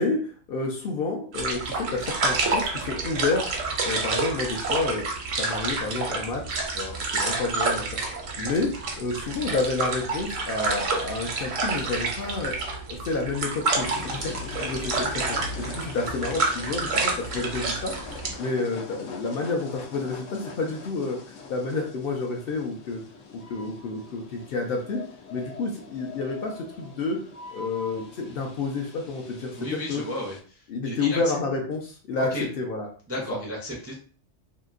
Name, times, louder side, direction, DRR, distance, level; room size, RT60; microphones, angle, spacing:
voice 1, 0.0-5.1 5.3-6.4 6.7-8.7 9.0-12.5 12.9-23.0 23.3-25.0 25.3-27.2 27.5-30.0 30.7-32.9 33.3-33.4, left 3 dB, 60° left, 1 dB, 0.7 m, -30 dB
sound 1, 1.3-18.3, right 3 dB, 85° right, 1.1 m, -29 dB
sound 2, 13.7-30.4, left 5 dB, 85° left, 0.9 m, -42 dB
voice 2, 29.6-31.2 32.2-32.4 33.1-33.9, left 1 dB, 20° right, -3 dB, 0.3 m, -34 dB
2.9 x 2.6 x 2.4 m, 0.42 s
omnidirectional pair, 1.3 m